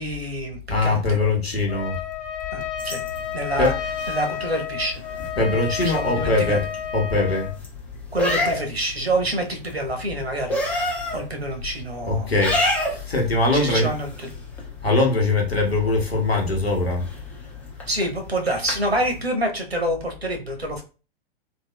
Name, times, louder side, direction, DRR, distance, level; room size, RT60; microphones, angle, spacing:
voice 1, 0.0-1.2 2.5-3.0 3.3-3.7 4.1-5.0 5.8-6.6 8.1-10.6 11.1-12.3 13.5-14.3 17.9-20.8, right 1 dB, 90° right, 4 dB, 0.8 m, -27 dB
voice 2, 0.7-2.0 3.6-3.7 5.4-6.6 6.9-7.5 12.0-13.9 14.8-17.1, left 2 dB, 80° left, 0 dB, 1.1 m, -21 dB
Trumpet, 1.7-7.6, left 8 dB, 60° left, 0.8 m, -31 dB
sound 1, 2.8-19.2, left 1 dB, 5° left, 0.3 m, -32 dB
3.4 x 2.3 x 2.2 m, 0.34 s
figure-of-eight pair, 105°, 30 cm